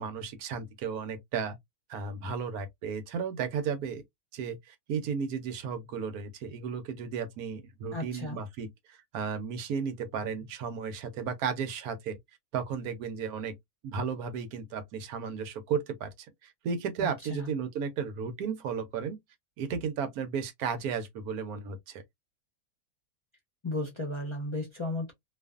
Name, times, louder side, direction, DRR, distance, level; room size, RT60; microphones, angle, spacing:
voice 1, 0.0-1.6 1.9-4.0 4.3-12.2 12.5-13.5 13.8-19.2 19.6-22.0, right 6 dB, 85° right, 1.2 m, -34 dB
voice 2, 7.9-8.4 17.0-17.5 23.6-25.1, left 2 dB, 30° left, 0.6 m, -34 dB
2.5 x 2.5 x 2.3 m
omnidirectional pair, 1.5 m